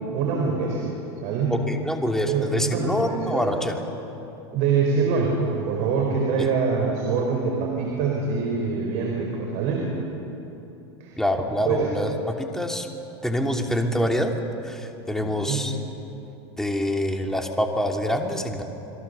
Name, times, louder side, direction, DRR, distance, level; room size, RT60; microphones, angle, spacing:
voice 1, 0.1-0.9 1.2-1.6 2.2-3.6 4.5-9.8 11.0-11.2 11.6-11.8 15.2-15.7, right 5 dB, 60° right, 0 dB, 4.9 m, -24 dB
voice 2, 1.5-3.8 6.4-6.5 11.2-12.9 13.2-14.3 14.6-15.7 16.6-18.6, equal, 5° left, 2 dB, 2.8 m, -26 dB
28.5 x 22.5 x 7.0 m, 3.0 s
hypercardioid pair, 105°, 14 cm